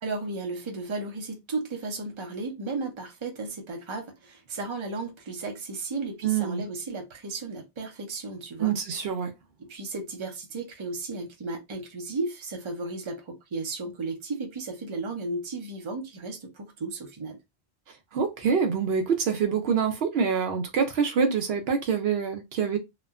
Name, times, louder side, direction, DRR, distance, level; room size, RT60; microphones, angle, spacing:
voice 1, 0.0-8.8 9.6-17.4, right 3 dB, 30° right, 0.6 m, -34 dB
voice 2, 6.2-6.6 8.6-9.3 18.1-22.8, right 6 dB, 70° right, 0.8 m, -25 dB
2.9 x 2.1 x 2.3 m
omnidirectional pair, 1.1 m